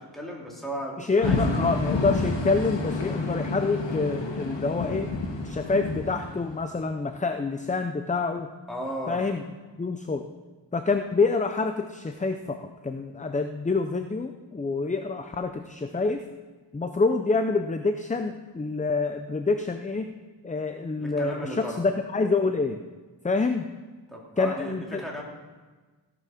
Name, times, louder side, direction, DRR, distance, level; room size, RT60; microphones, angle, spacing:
voice 1, 0.0-1.8 8.7-9.2 21.0-21.8 24.1-25.2, equal, ahead, -3 dB, 2.8 m, -35 dB
voice 2, 1.0-5.1 5.4-8.5 9.1-9.4 9.8-10.3 10.7-16.2 16.7-20.1 20.4-22.8 23.2-23.7 24.4-25.0, left 3 dB, 20° left, 7 dB, 0.5 m, -27 dB
sound 1, 1.2-6.9, left 3 dB, 75° left, 1.9 m, -29 dB
16.5 x 6.2 x 5.8 m, 1.3 s
wide cardioid pair, 105°, 44 cm